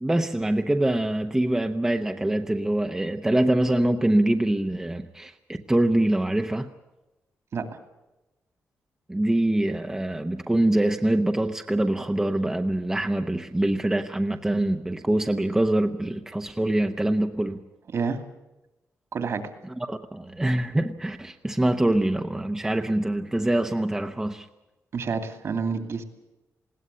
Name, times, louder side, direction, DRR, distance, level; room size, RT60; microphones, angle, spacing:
voice 1, 0.0-6.7 9.1-17.6 19.8-24.5, right 1 dB, 10° right, 5 dB, 0.8 m, -24 dB
voice 2, 17.9-18.2 19.1-19.5 24.9-26.0, right 5 dB, 55° right, 7 dB, 2.6 m, -29 dB
20.5 x 17.5 x 9.9 m, 1.0 s
wide cardioid pair, 155°, 6 cm